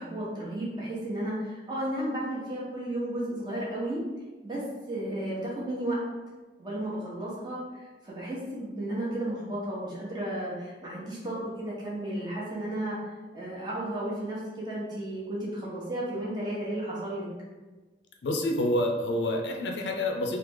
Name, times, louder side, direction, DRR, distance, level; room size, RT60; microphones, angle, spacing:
voice 1, 0.0-4.0 4.4-6.0 6.6-13.0 13.3-17.3, right 1 dB, 25° right, -7 dB, 0.9 m, -33 dB
voice 2, 18.2-20.4, left 1 dB, 85° left, 2 dB, 0.5 m, -28 dB
3.2 x 2.0 x 3.5 m, 1.2 s
head